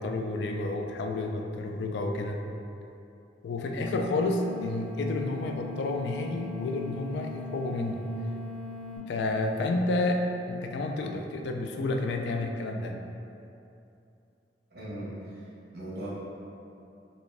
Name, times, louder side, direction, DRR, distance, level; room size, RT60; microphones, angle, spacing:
voice 1, 0.0-2.4 3.4-8.1 9.1-10.2 10.5-13.0, left 2 dB, 75° left, 3 dB, 0.3 m, -30 dB
sound 1, 3.8-9.0, left 4 dB, 35° left, 1.0 m, -41 dB
voice 2, 14.7-16.1, right 1 dB, 55° right, -9 dB, 1.3 m, -39 dB
4.0 x 2.5 x 3.4 m, 2.7 s
head